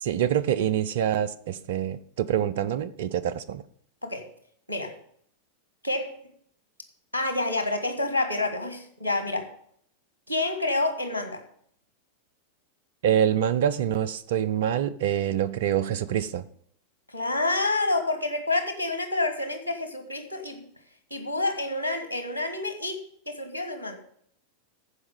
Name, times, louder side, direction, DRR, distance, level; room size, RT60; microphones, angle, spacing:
voice 1, 0.0-3.6 13.0-16.4, right 9 dB, 55° right, 16 dB, 0.6 m, -26 dB
voice 2, 5.8-6.2 7.1-9.5 10.3-11.4 17.1-20.6 21.1-24.0, left 2 dB, 85° right, 7 dB, 1.6 m, -28 dB
14.5 x 4.9 x 5.3 m, 0.65 s
figure-of-eight pair, 90°, 0 cm